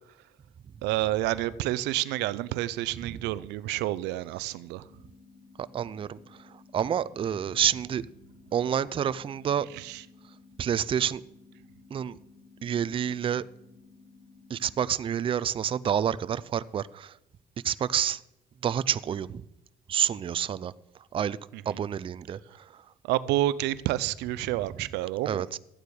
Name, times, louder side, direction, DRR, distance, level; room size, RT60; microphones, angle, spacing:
voice 1, 0.8-4.9 9.7-10.0 21.5-21.8 23.0-25.4, right 15 dB, 90° right, 0.5 m, -29 dB
sound 1, 4.9-14.9, left 4 dB, 85° left, 1.5 m, -55 dB
voice 2, 5.6-8.0 8.5-9.7 10.6-11.2 11.9-12.2 12.6-13.4 14.5-17.2 17.6-18.2 18.6-19.4 19.9-20.7 21.1-21.4 21.7-22.8 25.3-25.6, right 9 dB, 30° right, 0.4 m, -28 dB
13.0 x 9.1 x 4.8 m
cardioid pair, 110°, 17 cm